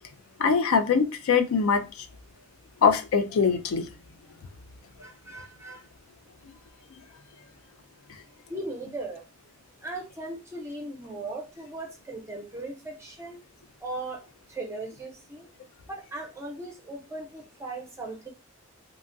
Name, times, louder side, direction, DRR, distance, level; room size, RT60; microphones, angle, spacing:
voice 1, 0.4-1.8 2.8-3.9, left 5 dB, 75° left, 8 dB, 0.4 m, -22 dB
voice 2, 5.0-5.8 8.5-9.2 9.8-13.4 13.8-14.2 14.5-15.5 15.9-18.3, right 2 dB, 15° right, 0 dB, 0.7 m, -38 dB
2.8 x 2.3 x 2.6 m, 0.28 s
head